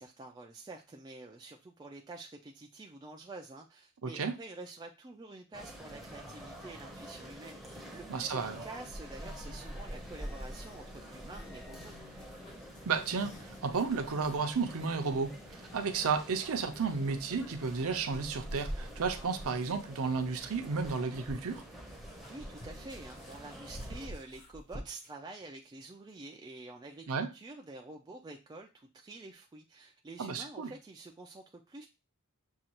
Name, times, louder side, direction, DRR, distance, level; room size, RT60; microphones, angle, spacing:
voice 1, 0.0-12.0 22.3-31.9, right 2 dB, 20° right, 0.3 m, -48 dB
voice 2, 4.0-4.3 8.1-8.6 12.9-21.6 27.1-27.3 30.2-30.7, right 5 dB, 65° right, 0.6 m, -33 dB
sound 1, 5.5-24.1, equal, ahead, 0.7 m, -46 dB
sound 2, 9.1-21.0, left 2 dB, 85° left, 1.2 m, -58 dB
sound 3, 10.5-15.0 17.3-17.4 19.4-25.2, equal, 35° left, 1.1 m, -51 dB
6.3 x 2.3 x 2.9 m
head